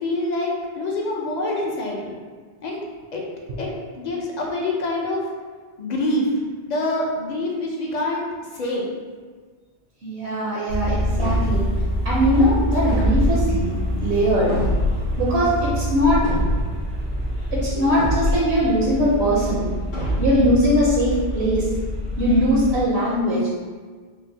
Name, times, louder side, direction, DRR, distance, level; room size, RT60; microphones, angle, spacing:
voice 1, 0.0-2.1 2.6-2.8 3.1-3.2 3.6-3.7 4.0-5.2 5.8-6.3 6.7-8.2 8.5-8.9, left 2 dB, 50° left, -1 dB, 0.6 m, -25 dB
voice 2, 10.0-11.7 12.0-13.7 14.0-14.6 15.2-16.6 17.5-19.7 20.2-21.7 22.2-23.5, equal, 70° right, -6 dB, 0.9 m, -20 dB
sound 1, 10.7-22.8, equal, 65° left, 2.0 m, -26 dB
sound 2, 11.2-11.8 12.9-13.6 14.5-15.1 16.2-16.9 17.9-18.6 19.9-20.6, equal, 85° left, 1.4 m, -25 dB
4.4 x 2.1 x 2.7 m, 1.5 s
omnidirectional pair, 1.1 m